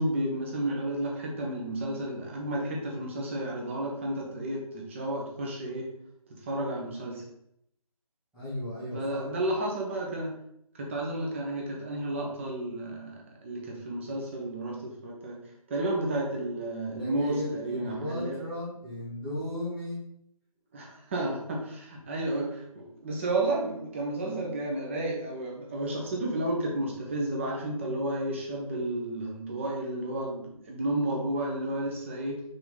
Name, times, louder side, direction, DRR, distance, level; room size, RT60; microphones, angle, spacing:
voice 1, 0.0-5.9 6.3-7.2 8.9-10.4 10.7-15.4 15.7-18.4 20.7-32.4, right 1 dB, 20° right, -1 dB, 1.1 m, -32 dB
voice 2, 8.3-9.3 17.0-20.0, left 1 dB, ahead, -19 dB, 0.5 m, -35 dB
6.0 x 3.8 x 5.1 m, 0.74 s
figure-of-eight pair, 165°, 19 cm